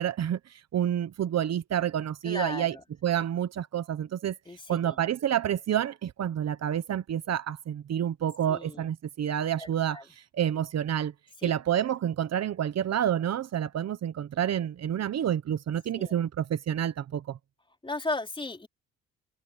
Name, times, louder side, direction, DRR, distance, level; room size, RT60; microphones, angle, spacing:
voice 1, 0.0-2.7 3.0-4.4 4.7-11.1 11.4-17.4, right 10 dB, 55° right, 1.1 m, -29 dB
voice 2, 2.2-2.8 4.5-5.0 8.5-8.9 9.6-10.0 11.4-11.5 16.0-16.2 17.8-18.7, left 2 dB, 15° left, 3.7 m, -35 dB
cardioid pair, 85°, 31 cm